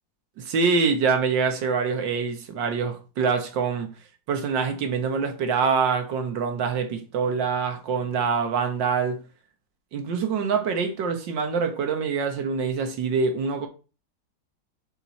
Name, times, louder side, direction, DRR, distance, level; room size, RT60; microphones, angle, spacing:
voice 1, 0.4-3.9 4.3-9.2 9.9-13.7, right 5 dB, 85° right, 1.8 m, -25 dB
7.2 x 4.5 x 4.2 m
omnidirectional pair, 1.9 m